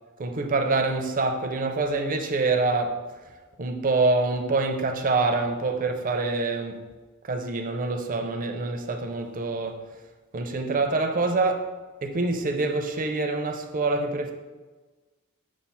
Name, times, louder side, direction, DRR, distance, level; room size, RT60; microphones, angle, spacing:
voice 1, 0.2-3.0 3.6-6.9 7.2-9.9 10.3-11.7 12.0-14.3, right 3 dB, 40° right, 0.6 m, -26 dB
7.1 x 2.5 x 5.6 m
head